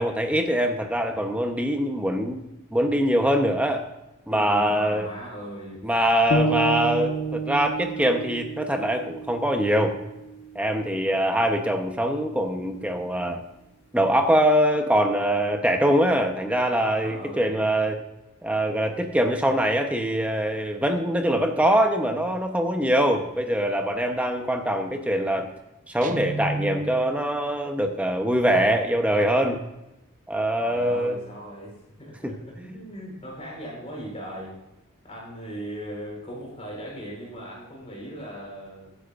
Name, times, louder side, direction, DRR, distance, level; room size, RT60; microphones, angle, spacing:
voice 1, 0.0-2.5 2.7-3.8 4.3-5.1 5.8-10.0 10.5-13.4 13.9-18.0 18.4-25.5 25.9-29.6 30.3-31.2 32.2-32.3 32.6-32.8, equal, 5° right, 4 dB, 0.9 m, -23 dB
voice 2, 4.3-5.9 17.0-17.4 30.6-31.7 32.0-34.6 35.0-39.0, right 1 dB, 30° left, -3 dB, 4.4 m, -38 dB
sound 1, 6.3-10.4, right 3 dB, 55° left, 1.6 m, -29 dB
Guitar, 26.0-27.2, right 3 dB, 40° right, 0.5 m, -31 dB
22.0 x 9.9 x 2.6 m, 0.96 s
head